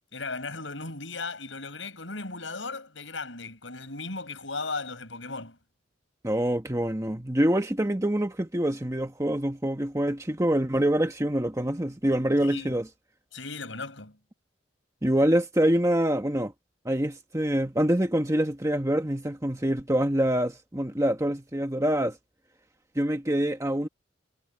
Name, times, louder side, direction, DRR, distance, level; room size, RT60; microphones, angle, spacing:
voice 1, 0.1-5.6 12.4-12.8 13.3-14.2, left 3 dB, 80° left, 6.8 m, -36 dB
voice 2, 6.2-12.8 15.0-16.5 16.8-22.2 22.9-23.9, right 1 dB, 15° right, 1.2 m, -25 dB
head